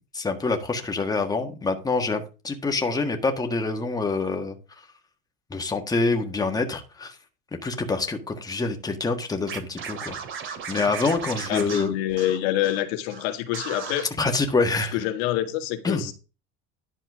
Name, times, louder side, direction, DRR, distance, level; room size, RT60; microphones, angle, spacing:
voice 1, 0.1-4.6 5.5-7.2 7.5-10.2 10.4-11.9 14.2-15.0 15.8-16.1, left 3 dB, 10° left, 1.6 m, -26 dB
Scratching (performance technique), 9.5-12.8 13.1-13.2 13.5-14.0, right 6 dB, 40° right, 2.4 m, -35 dB
voice 2, 11.3-14.1 14.9-16.1, left 13 dB, 85° left, 2.0 m, -27 dB
11.0 x 4.4 x 6.1 m
cardioid pair, 135°, 31 cm